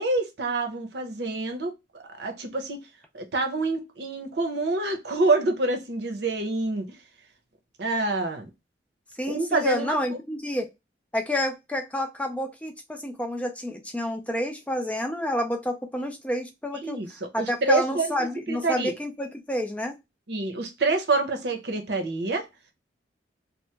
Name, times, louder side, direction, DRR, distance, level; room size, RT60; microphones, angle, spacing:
voice 1, 0.0-1.7 2.2-2.8 3.1-6.9 7.8-8.5 9.3-10.2 16.8-18.1 18.5-18.9 20.3-22.5, right 3 dB, 65° right, 0.7 m, -27 dB
voice 2, 9.2-10.7 11.1-17.0 17.3-20.0, left 1 dB, 10° left, 0.3 m, -29 dB
2.9 x 2.1 x 3.2 m
head